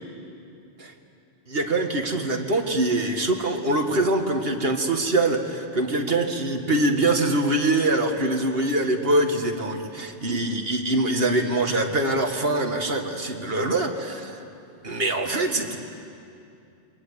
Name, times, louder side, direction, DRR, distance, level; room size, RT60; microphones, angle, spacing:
voice 1, 1.5-14.4 14.8-15.8, right 2 dB, 60° right, 4 dB, 2.2 m, -24 dB
29.0 x 24.0 x 8.4 m, 2.5 s
omnidirectional pair, 1.1 m